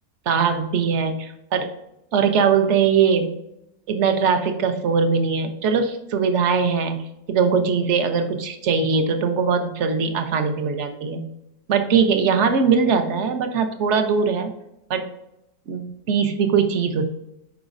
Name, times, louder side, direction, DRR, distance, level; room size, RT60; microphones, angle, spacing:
voice 1, 0.3-1.7 2.1-3.4 3.9-7.0 7.3-11.3 11.7-14.5 14.9-15.1 15.7-17.0, right 6 dB, 55° right, 7 dB, 1.0 m, -21 dB
8.0 x 5.1 x 2.6 m, 0.84 s
omnidirectional pair, 1.7 m